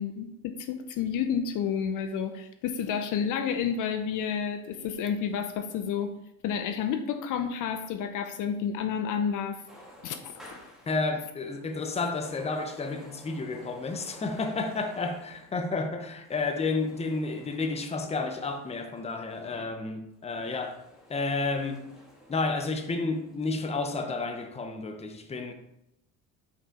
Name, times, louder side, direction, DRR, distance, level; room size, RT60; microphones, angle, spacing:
voice 1, 0.0-6.1 6.4-9.6 10.0-10.3, left 7 dB, 55° left, 0.7 m, -30 dB
sound 1, 9.7-19.5 20.1-23.5, equal, ahead, 1.9 m, -53 dB
voice 2, 10.9-20.8 21.1-21.8 22.3-25.5, left 3 dB, 15° left, 0.8 m, -31 dB
5.7 x 4.8 x 3.7 m
supercardioid pair, 95°, 38 cm